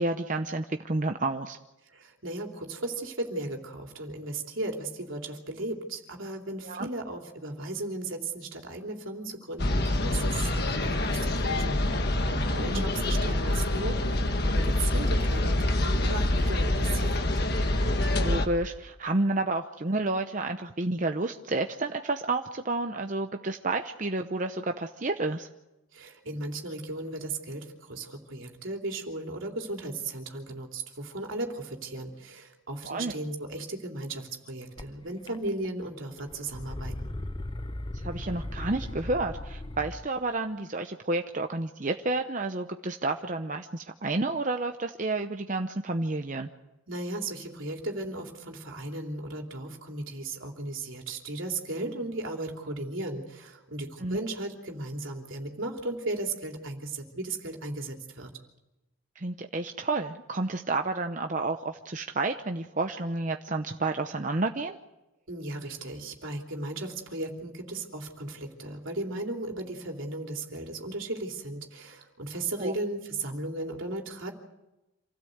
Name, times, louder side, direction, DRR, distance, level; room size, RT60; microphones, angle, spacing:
voice 1, 0.0-1.6 6.6-6.9 12.7-12.8 18.2-25.5 32.8-33.1 37.9-46.5 54.0-54.2 59.2-64.8 72.6-72.7, right 2 dB, 40° right, 5 dB, 0.8 m, -30 dB
voice 2, 1.9-11.8 12.3-17.3 25.9-37.2 46.9-58.3 65.3-74.3, right 2 dB, 75° right, 2 dB, 3.2 m, -36 dB
sound 1, 9.6-18.5, left 1 dB, 50° left, 1.6 m, -26 dB
sound 2, 34.8-34.9 35.3-35.8 36.1-40.1, left 1 dB, 25° left, 0.7 m, -37 dB
27.0 x 16.5 x 8.0 m, 0.98 s
head